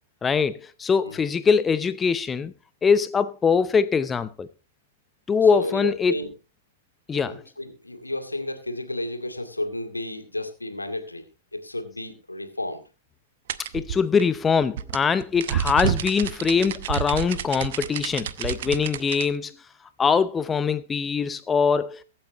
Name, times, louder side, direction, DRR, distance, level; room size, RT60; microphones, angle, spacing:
voice 1, 0.2-2.5 2.8-4.5 5.3-6.1 7.1-7.4 13.7-19.5 20.0-22.0, left 5 dB, 15° left, 0.7 m, -22 dB
voice 2, 5.4-6.3 7.1-12.8, left 1 dB, 85° left, 2.2 m, -32 dB
sound 1, 13.5-19.3, right 10 dB, 55° right, 0.8 m, -29 dB
22.5 x 8.9 x 2.9 m
figure-of-eight pair, 100°, 0 cm